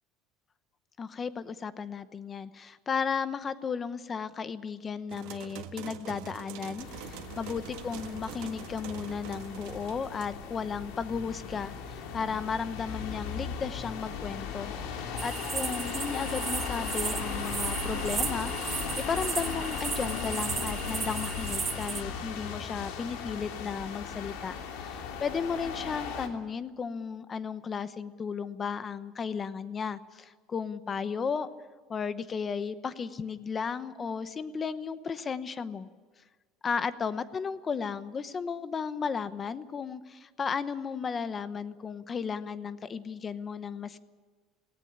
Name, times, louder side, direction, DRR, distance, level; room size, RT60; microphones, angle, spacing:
voice 1, 1.0-14.7 15.0-18.5 19.0-24.5 24.8-31.5 31.9-35.9 36.6-44.0, left 6 dB, 25° left, 13 dB, 0.9 m, -34 dB
sound 1, 5.1-10.3, right 11 dB, 75° right, 1.6 m, -44 dB
sound 2, 6.8-26.3, left 6 dB, 75° left, 2.8 m, -37 dB
sound 3, 15.2-22.0, right 6 dB, 25° right, 1.3 m, -35 dB
18.5 x 17.5 x 9.9 m, 1.4 s
cardioid pair, 155°, 0 cm